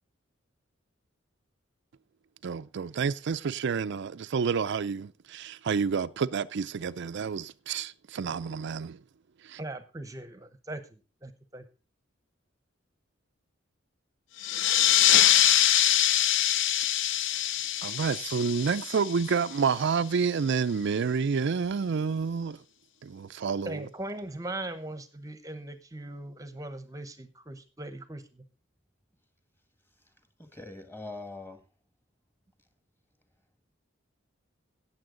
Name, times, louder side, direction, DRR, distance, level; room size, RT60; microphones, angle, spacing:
voice 1, 2.4-9.0 9.4-9.6 17.2-22.6 23.0-23.8, right 5 dB, 60° right, 0.4 m, -29 dB
voice 2, 9.6-11.6 23.6-28.4, right 2 dB, 15° right, 0.9 m, -40 dB
sound 1, 14.4-19.6, left 11 dB, 65° left, 0.5 m, -24 dB
voice 3, 30.4-31.6, left 2 dB, 10° left, 1.8 m, -42 dB
17.5 x 7.2 x 3.8 m
head